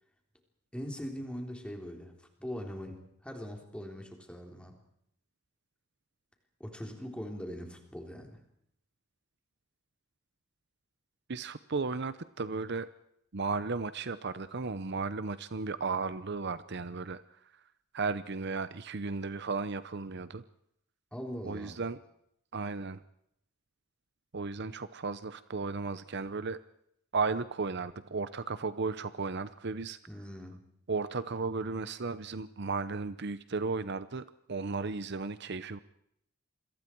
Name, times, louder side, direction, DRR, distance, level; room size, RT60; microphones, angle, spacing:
voice 1, 0.7-4.8 6.6-8.4 21.1-21.8 30.1-30.6, equal, 5° left, 3 dB, 3.7 m, -41 dB
voice 2, 11.3-12.9 13.3-17.2 17.9-20.4 21.5-22.0 22.5-23.0 24.3-26.6 27.1-30.0 30.9-35.8, right 4 dB, 55° right, 14 dB, 0.8 m, -35 dB
28.0 x 22.5 x 4.6 m, 0.74 s
head